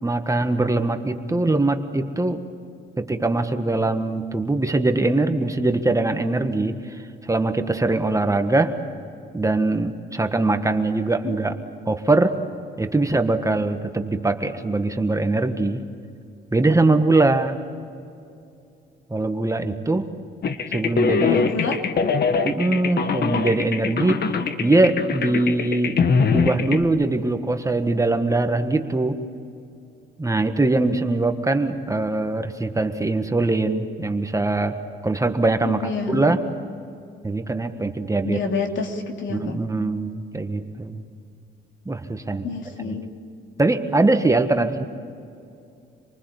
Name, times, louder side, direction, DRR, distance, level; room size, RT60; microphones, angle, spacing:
voice 1, 0.0-2.4 3.0-6.7 7.3-8.8 9.3-11.5 11.9-12.4 12.8-15.8 16.5-17.6 19.1-20.0 20.7-21.4 22.4-26.0 26.3-29.2 30.2-34.8 35.0-36.4 37.2-38.4 39.3-41.0 41.9-42.5 43.6-44.8, right 2 dB, 15° right, 7 dB, 1.5 m, -22 dB
sound 1, 20.4-26.8, left 5 dB, 55° left, 1.5 m, -23 dB
voice 2, 21.2-21.8 35.6-36.4 38.2-39.6 42.4-43.0, left 5 dB, 70° left, 3 dB, 3.1 m, -28 dB
27.0 x 20.0 x 8.3 m, 2.5 s
cardioid pair, 90°, 20 cm